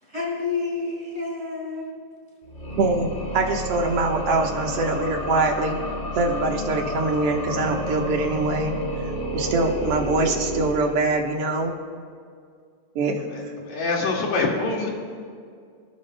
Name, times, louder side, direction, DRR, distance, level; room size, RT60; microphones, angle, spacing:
voice 1, 0.0-2.0, left 4 dB, 15° right, -5 dB, 3.9 m, -29 dB
sound 1, 2.4-11.5, equal, 25° left, 2.2 m, -31 dB
voice 2, 2.8-3.1 3.3-5.8 6.2-8.7 9.3-11.7 13.0-13.2, right 2 dB, 60° right, 2 dB, 2.1 m, -23 dB
voice 3, 13.3-14.9, left 3 dB, 70° left, -2 dB, 3.4 m, -25 dB
25.5 x 13.0 x 2.2 m, 2.2 s
omnidirectional pair, 3.4 m